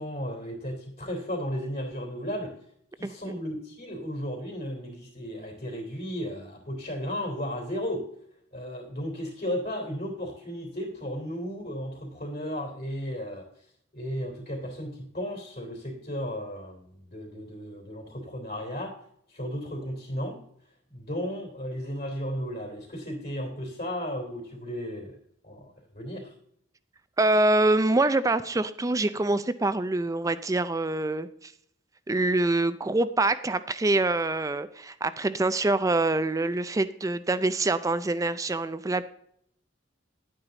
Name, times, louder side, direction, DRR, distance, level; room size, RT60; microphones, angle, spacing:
voice 1, 0.0-2.5 3.0-8.0 8.5-13.5 13.9-19.0 19.3-20.4 20.9-25.1 25.4-26.3, equal, 45° left, -3 dB, 3.1 m, -34 dB
voice 2, 27.2-31.5 32.1-39.0, right 2 dB, 15° right, 13 dB, 0.4 m, -25 dB
11.0 x 8.9 x 3.9 m, 0.70 s
head